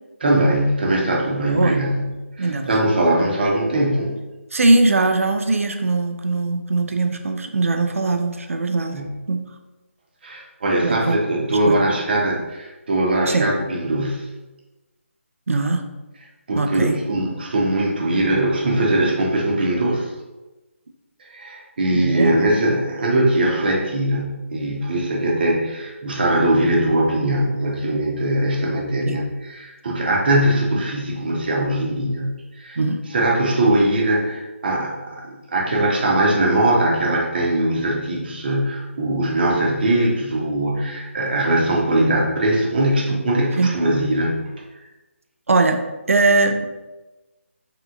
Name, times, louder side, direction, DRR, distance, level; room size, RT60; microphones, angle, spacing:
voice 1, 0.2-2.1 2.4-4.2 8.9-9.1 10.2-14.3 16.5-20.1 21.3-32.8 33.1-35.2 35.5-44.4, right 1 dB, 45° right, -2 dB, 0.8 m, -21 dB
voice 2, 1.5-1.8 2.4-2.8 4.5-9.0 9.3-9.4 10.8-11.2 11.5-11.8 13.3-13.5 15.5-15.9 16.5-17.0 21.9-22.3 29.1-29.2 32.8-33.0 43.6-43.7 45.5-46.7, right 3 dB, 75° right, 6 dB, 0.4 m, -20 dB
3.4 x 2.9 x 2.4 m, 1.1 s
figure-of-eight pair, 155°, 7 cm